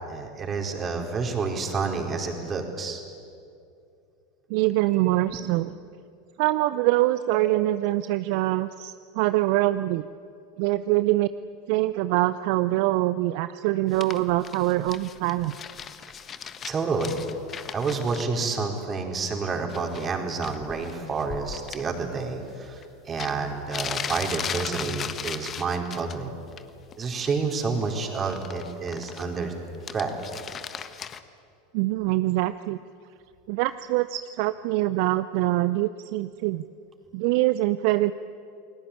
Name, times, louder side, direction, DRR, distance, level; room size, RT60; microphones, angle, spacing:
voice 1, 0.1-3.0 5.0-5.4 16.7-17.2 17.7-26.3 27.0-29.5 29.9-30.1, right 4 dB, 25° right, 3 dB, 4.4 m, -29 dB
voice 2, 4.5-5.7 6.4-10.0 10.6-11.3 11.7-15.5 31.7-32.8 33.5-36.6 37.1-38.1, right 17 dB, 55° right, 14 dB, 0.6 m, -24 dB
sound 1, 13.9-18.2 19.7-20.1 20.4-21.8 22.8-22.9 23.2-26.2 26.5-26.9 27.2-29.4 29.7-31.2, left 7 dB, 30° left, 1.4 m, -37 dB
29.0 x 20.5 x 8.6 m, 2.4 s
figure-of-eight pair, 85°, 0 cm